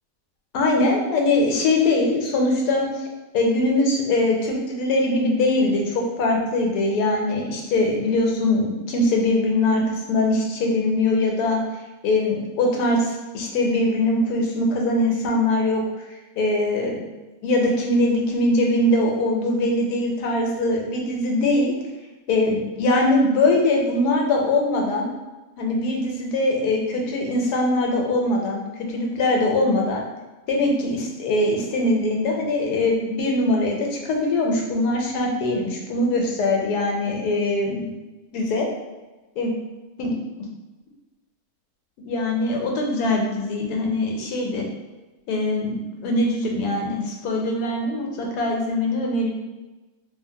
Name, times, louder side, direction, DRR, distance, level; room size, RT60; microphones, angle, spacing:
voice 1, 0.5-3.0 3.3-9.8 10.1-11.6 12.0-15.8 16.4-17.0 17.4-21.7 22.3-25.1 25.6-28.6 28.9-30.0 30.5-37.9 38.3-38.7 39.4-39.5 40.0-40.2 42.0-44.7 45.3-49.3, left 2 dB, 90° left, 0 dB, 1.1 m, -22 dB
2.7 x 2.5 x 2.7 m, 1.1 s
omnidirectional pair, 1.6 m